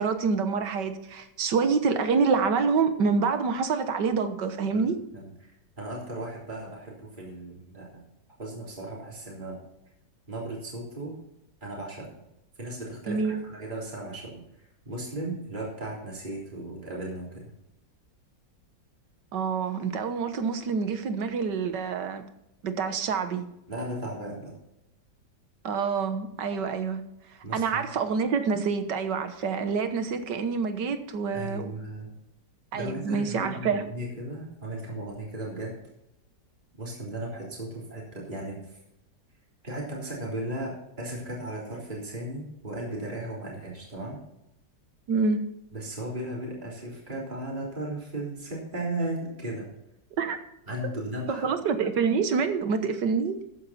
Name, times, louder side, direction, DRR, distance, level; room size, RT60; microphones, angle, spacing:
voice 1, 0.0-5.0 13.1-13.4 19.3-22.2 22.6-23.5 25.6-27.0 27.5-31.7 32.7-33.9 45.1-45.4 50.2-50.4 51.3-53.4, right 5 dB, 75° right, 1.8 m, -27 dB
voice 2, 4.7-5.5 5.8-8.0 8.4-9.6 10.3-11.2 11.6-12.1 12.6-14.4 14.9-17.4 23.7-24.5 27.4-27.9 31.3-32.2 32.7-35.8 36.8-38.7 39.6-44.2 45.7-49.7 50.7-51.5, right 1 dB, 25° right, 3.7 m, -36 dB
13.5 x 9.6 x 4.2 m
omnidirectional pair, 1.9 m